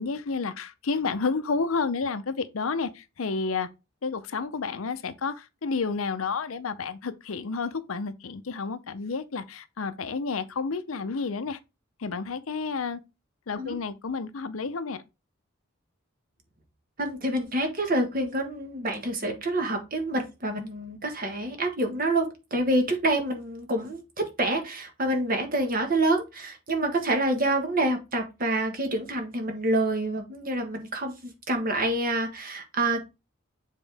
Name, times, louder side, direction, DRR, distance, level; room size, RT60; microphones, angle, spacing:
voice 1, 0.0-3.7 4.0-11.6 12.0-13.0 13.5-15.0, left 4 dB, 85° left, 0.7 m, -30 dB
voice 2, 17.0-33.0, right 1 dB, 45° right, 1.5 m, -27 dB
7.3 x 3.8 x 3.4 m
head